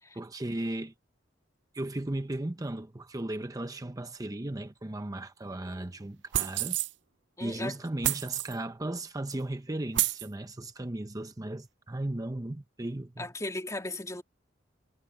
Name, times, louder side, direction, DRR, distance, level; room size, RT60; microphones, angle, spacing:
voice 1, 0.1-0.9 1.7-6.8 7.4-13.2, right 1 dB, 20° right, 0.7 m, -36 dB
sound 1, 6.3-6.9 8.0-8.5 9.3-9.4 9.9-10.3, right 14 dB, 65° right, 0.6 m, -29 dB
voice 2, 7.4-7.8 13.2-14.2, left 2 dB, 15° left, 2.3 m, -36 dB
head